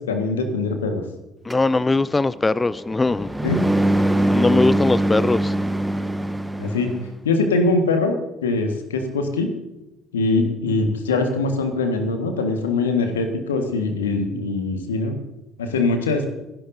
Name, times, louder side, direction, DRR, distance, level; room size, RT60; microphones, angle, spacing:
voice 1, 0.1-1.0 3.4-3.6 6.6-6.9 7.3-8.2 8.4-9.5 10.1-15.1 15.6-16.3, left 3 dB, 75° left, 6 dB, 1.6 m, -22 dB
voice 2, 1.4-3.3 4.3-5.6, left 3 dB, 20° left, 19 dB, 0.3 m, -20 dB
sound 1, 1.5-7.1, right 1 dB, 5° right, 1.1 m, -23 dB
29.5 x 11.0 x 2.7 m, 0.96 s
figure-of-eight pair, 55°, 0 cm